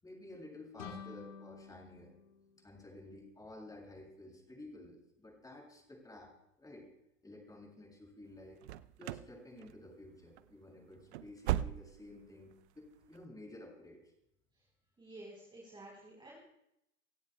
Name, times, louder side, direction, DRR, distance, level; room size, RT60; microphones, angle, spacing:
voice 1, 0.0-2.1 2.6-6.3 6.6-6.9 7.2-8.6 9.0-14.0, left 1 dB, 10° left, -1 dB, 7.2 m, -52 dB
sound 1, 0.8-3.5, left 6 dB, 65° left, 2.0 m, -51 dB
sound 2, 8.6-9.3 9.6-10.1 10.4-10.5 10.9-12.2 12.5-12.6 13.1-13.2, right 13 dB, 55° right, 0.6 m, -37 dB
voice 2, 15.0-16.4, right 1 dB, 10° right, -2 dB, 4.1 m, -52 dB
27.5 x 17.0 x 2.3 m, 0.80 s
figure-of-eight pair, 90°, 40 cm